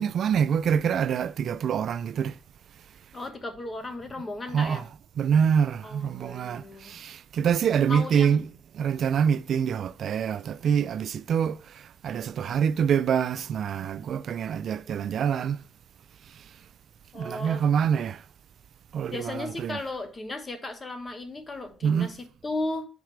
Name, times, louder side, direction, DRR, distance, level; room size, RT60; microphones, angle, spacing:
voice 1, 0.0-2.4 4.5-15.6 16.3-16.5 17.1-18.2 18.9-19.8 21.8-22.1, right 7 dB, 65° right, 0.3 m, -26 dB
voice 2, 3.1-4.9 5.8-7.0 7.9-8.4 17.1-17.6 19.1-22.9, left 2 dB, 30° left, 1.2 m, -35 dB
4.8 x 4.7 x 6.0 m
cardioid pair, 90°, 0 cm